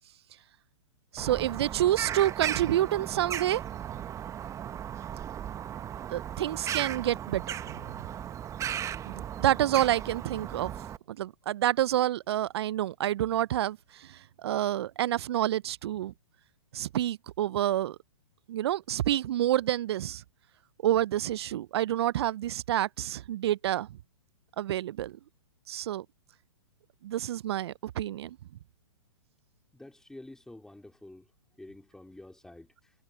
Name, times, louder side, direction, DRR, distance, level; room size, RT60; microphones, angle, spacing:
voice 1, 1.1-3.6 6.1-8.0 9.1-10.7 11.1-16.1 16.7-18.0 18.5-20.2 20.8-23.9 24.6-25.2 25.7-26.0 27.0-28.4, right 12 dB, 50° right, 0.7 m, -28 dB
Bird vocalization bird call bird song, 1.2-11.0, right 10 dB, 20° right, 1.4 m, -36 dB
voice 2, 29.7-31.2 31.6-32.9, left 1 dB, 5° left, 3.2 m, -49 dB
figure-of-eight pair, 120°, 17 cm